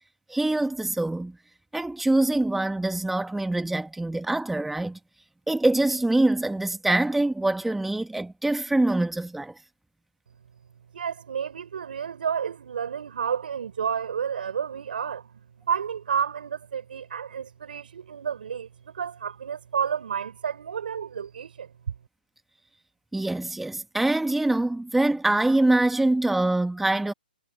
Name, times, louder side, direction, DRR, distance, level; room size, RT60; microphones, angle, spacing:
voice 1, 0.3-1.4 1.7-5.0 5.5-9.5 23.1-27.1, right 2 dB, 5° right, 1.9 m, -24 dB
voice 2, 10.9-15.3 15.7-18.7 18.9-21.7, right 7 dB, 70° right, 3.8 m, -30 dB
hypercardioid pair, 135°, 5 cm